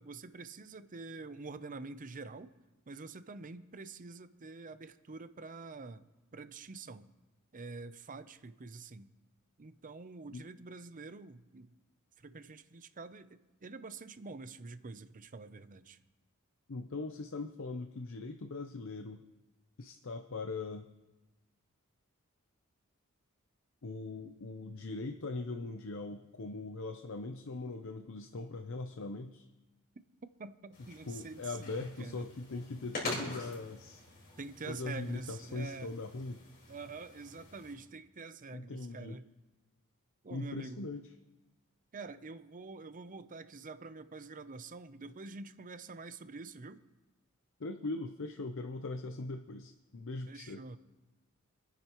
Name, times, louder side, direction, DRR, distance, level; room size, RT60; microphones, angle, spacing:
voice 1, 0.0-2.5 2.9-6.0 6.3-7.1 7.5-9.1 9.6-11.7 12.2-16.0 30.4-32.3 34.4-35.9 36.7-39.2 40.2-40.9 41.9-46.8 50.3-50.8, right 3 dB, 40° right, 12 dB, 0.6 m, -46 dB
voice 2, 16.7-19.2 19.8-20.9 23.8-29.5 31.1-34.0 34.7-36.4 38.5-39.2 40.3-41.0 47.6-50.6, left 3 dB, 60° left, 6 dB, 0.7 m, -40 dB
sound 1, 30.7-37.7, left 2 dB, 45° left, 4.5 m, -45 dB
27.5 x 10.0 x 3.0 m, 1.1 s
head